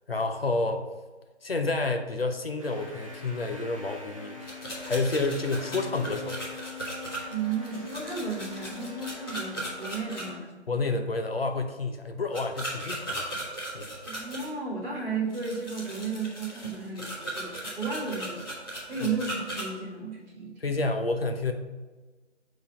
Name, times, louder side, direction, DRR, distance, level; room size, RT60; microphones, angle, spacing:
voice 1, 0.1-0.8 1.4-4.4 4.8-6.4 10.7-13.3 13.7-13.9 20.6-21.5, left 3 dB, 55° left, 5 dB, 0.7 m, -29 dB
sound 1, 2.6-10.4, left 5 dB, 30° right, 0.6 m, -43 dB
sound 2, 4.4-10.2 12.3-14.5 15.3-19.7, right 1 dB, 20° left, 1.5 m, -37 dB
voice 2, 7.3-10.6 10.8-11.0 14.1-18.5 18.9-20.5, right 5 dB, 15° right, -17 dB, 1.4 m, -34 dB
4.9 x 4.0 x 5.7 m, 1.3 s
figure-of-eight pair, 160°, 35 cm